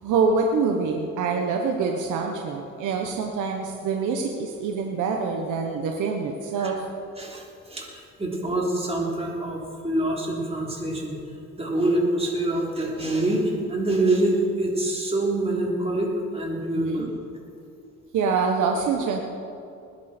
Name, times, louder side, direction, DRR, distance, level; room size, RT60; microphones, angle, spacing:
voice 1, 0.0-6.8 16.7-17.1 18.1-19.2, right 5 dB, 85° right, 2 dB, 1.3 m, -25 dB
voice 2, 7.2-11.2 11.6-17.1, right 1 dB, 20° right, -2 dB, 3.5 m, -25 dB
20.0 x 11.0 x 4.5 m, 2.5 s
cardioid pair, 90°, 30 cm